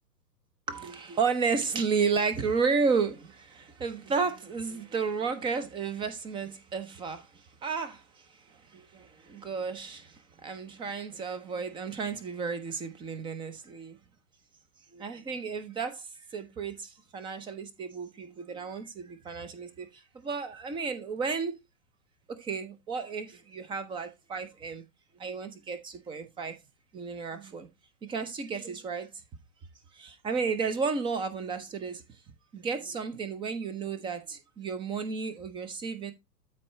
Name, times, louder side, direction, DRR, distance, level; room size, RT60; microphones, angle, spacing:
voice 1, 0.7-14.0 14.9-21.6 22.3-24.8 25.1-26.6 26.9-27.7 28.0-29.1 29.9-32.2 32.5-36.1, right 5 dB, 10° right, 0.7 m, -33 dB
13.0 x 4.6 x 3.1 m
figure-of-eight pair, 110°, 49 cm